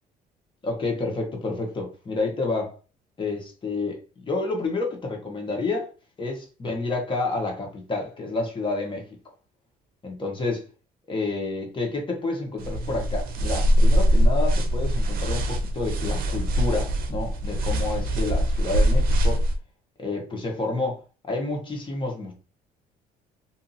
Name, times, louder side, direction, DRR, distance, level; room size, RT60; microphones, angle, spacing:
voice 1, 0.6-2.7 3.2-5.9 6.2-9.1 10.0-10.7 11.1-19.4 20.0-22.3, left 3 dB, 30° left, 1.1 m, -29 dB
sound 1, 12.6-19.6, equal, 60° right, 0.6 m, -22 dB
2.7 x 2.5 x 2.6 m
cardioid pair, 110°, 17 cm